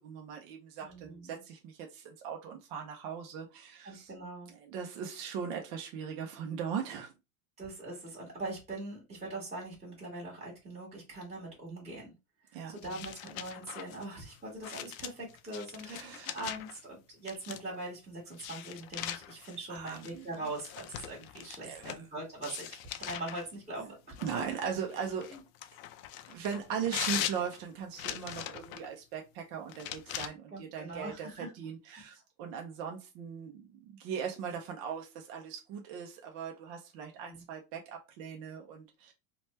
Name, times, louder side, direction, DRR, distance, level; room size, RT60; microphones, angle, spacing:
voice 1, 0.0-4.1 4.6-7.1 12.5-12.8 15.8-16.3 19.7-20.3 21.6-22.0 23.8-23.9 24.2-25.4 26.3-39.1, right 7 dB, 35° right, 0.4 m, -39 dB
voice 2, 0.8-1.4 3.8-4.5 7.6-12.1 12.5-23.8 25.3-25.4 30.5-31.5 31.9-32.0 37.2-37.4, right 2 dB, 15° right, 1.4 m, -42 dB
sound 1, 12.8-16.8 17.3-17.8 18.3-22.0 22.4-23.5 24.1-28.9 29.7-30.3, left 12 dB, 70° left, 0.5 m, -41 dB
3.0 x 2.2 x 3.0 m
supercardioid pair, 155°, 43 cm